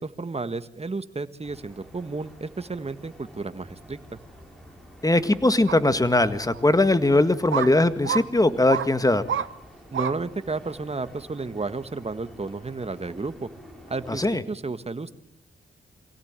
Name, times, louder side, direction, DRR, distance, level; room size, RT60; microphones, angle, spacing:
voice 1, 0.0-4.0 9.9-13.5 13.9-15.2, right 3 dB, 30° right, 11 dB, 1.6 m, -32 dB
sound 1, 1.4-14.3, equal, ahead, 6.9 m, -48 dB
voice 2, 5.0-9.2 14.1-14.4, left 2 dB, 15° left, 12 dB, 1.8 m, -20 dB
sound 2, 5.7-5.8 6.5-6.6 7.5-7.7 8.0-8.2 8.7-8.9 9.3-9.5 9.9-10.1 10.7-10.8, right 8 dB, 75° right, 0.9 m, -27 dB
24.0 x 17.0 x 8.9 m, 0.77 s
cardioid pair, 55°, 20 cm